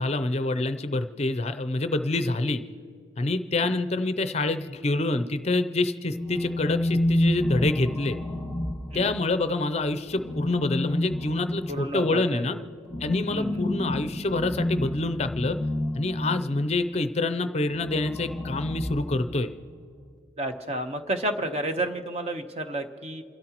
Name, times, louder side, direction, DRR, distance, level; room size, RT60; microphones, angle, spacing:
voice 1, 0.0-2.6 3.2-8.2 8.9-12.6 13.0-15.6 15.9-19.5, left 2 dB, 35° left, 10 dB, 0.5 m, -26 dB
sound 1, 6.1-9.4 10.1-16.7 17.7-19.6, left 1 dB, 5° left, 0.8 m, -30 dB
voice 2, 11.7-12.6 13.3-13.7 20.4-23.2, right 1 dB, 35° right, 6 dB, 0.9 m, -31 dB
28.5 x 12.5 x 3.0 m, 2.5 s
head